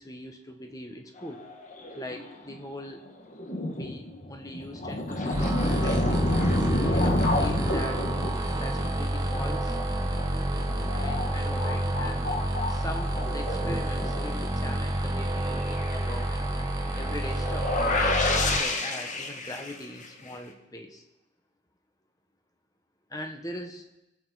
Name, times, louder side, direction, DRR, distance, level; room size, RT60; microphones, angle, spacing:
voice 1, 0.0-1.4 1.9-3.0 3.7-6.3 6.9-8.0 8.6-9.8 10.9-12.3 12.7-16.4 16.9-18.1 18.4-21.0 23.1-23.8, left 1 dB, 15° left, 4 dB, 1.4 m, -40 dB
sound 1, 1.2-2.6 3.1-3.2 3.3-14.7 15.2-15.3 15.4-20.3, left 2 dB, 35° left, 1.4 m, -30 dB
sound 2, 5.3-18.6, right 1 dB, 20° right, 1.3 m, -29 dB
24.5 x 8.9 x 4.2 m, 0.96 s
head